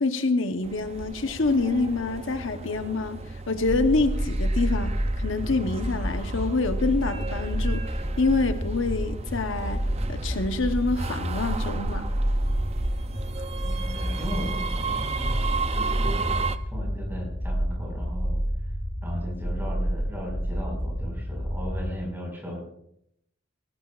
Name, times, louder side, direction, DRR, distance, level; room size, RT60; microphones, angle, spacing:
voice 1, 0.0-3.2 3.5-7.9 8.2-9.8 10.1-12.1, left 3 dB, 75° left, 0.9 m, -26 dB
sound 1, 0.6-16.6, right 4 dB, 30° right, 0.5 m, -35 dB
sound 2, 3.6-22.0, equal, 25° left, 3.4 m, -29 dB
voice 2, 13.6-15.5 15.7-18.4 19.0-22.6, equal, 10° right, 5.0 m, -37 dB
19.0 x 18.0 x 2.4 m
head